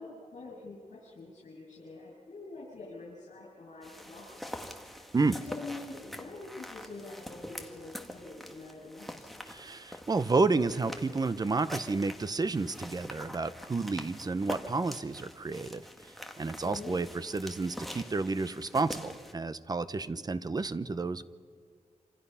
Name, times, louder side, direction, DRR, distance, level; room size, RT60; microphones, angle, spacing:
voice 1, 0.0-9.4 16.6-17.0, left 3 dB, 65° left, -5 dB, 7.0 m, -46 dB
sound 1, 3.8-19.3, equal, ahead, 1.6 m, -45 dB
voice 2, 9.5-15.8 16.4-21.2, right 3 dB, 30° right, 13 dB, 0.7 m, -30 dB
27.0 x 27.0 x 5.7 m, 2.1 s
wide cardioid pair, 150°, 13 cm